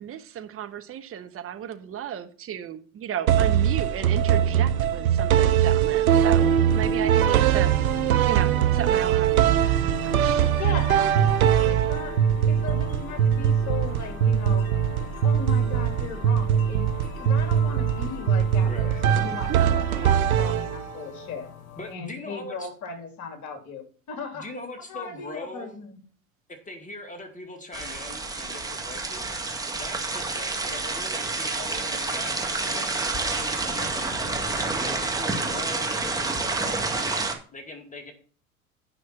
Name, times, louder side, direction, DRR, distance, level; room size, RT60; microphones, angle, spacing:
voice 1, 0.0-7.7 8.3-9.4 10.0-10.5 19.5-19.8, right 9 dB, 30° right, 7 dB, 1.3 m, -34 dB
sound 1, 3.3-21.1, right 9 dB, 80° right, 1.0 m, -22 dB
sound 2, 6.4-21.9, left 9 dB, 70° left, 1.0 m, -40 dB
voice 2, 10.6-12.2 12.5-14.7 15.2-16.8 17.2-21.5 21.9-24.5 24.9-26.0, left 5 dB, 40° left, 6 dB, 3.0 m, -37 dB
voice 3, 18.6-19.0 21.8-22.7 24.3-25.7 26.7-33.0 33.4-36.8 37.5-38.1, left 2 dB, 20° left, 4 dB, 2.5 m, -41 dB
sound 3, 27.7-37.3, right 3 dB, 10° right, 1.9 m, -29 dB
10.0 x 5.9 x 6.0 m, 0.43 s
hypercardioid pair, 85°, 42 cm